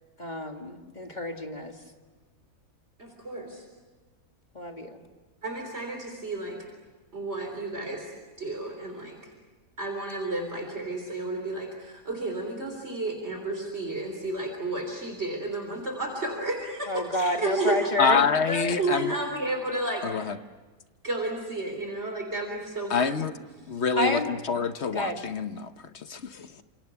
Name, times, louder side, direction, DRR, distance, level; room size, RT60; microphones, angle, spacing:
voice 1, 0.2-1.8 4.5-5.0 16.9-18.8 23.9-24.3 24.9-25.3, left 1 dB, 30° left, 3 dB, 2.1 m, -30 dB
voice 2, 3.0-3.6 5.4-6.6 7.1-8.1 8.4-9.2 9.8-17.8 18.8-20.1 21.0-23.3, right 2 dB, 45° right, 2 dB, 3.9 m, -32 dB
voice 3, 18.0-19.1 20.0-20.3 22.9-23.3 23.7-25.7 26.1-26.6, left 5 dB, 55° left, 10 dB, 1.2 m, -26 dB
28.5 x 27.0 x 6.9 m, 1.3 s
omnidirectional pair, 1.5 m